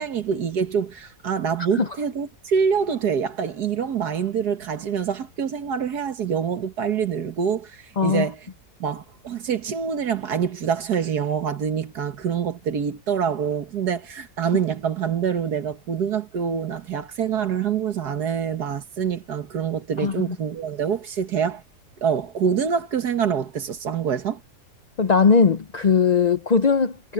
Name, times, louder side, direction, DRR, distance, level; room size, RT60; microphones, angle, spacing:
voice 1, 0.0-8.4 8.8-21.6 22.0-24.4, right 7 dB, 75° right, 1.9 m, -25 dB
voice 2, 8.0-8.3 20.0-20.4 25.0-27.1, left 5 dB, 60° left, 0.4 m, -19 dB
omnidirectional pair, 1.7 m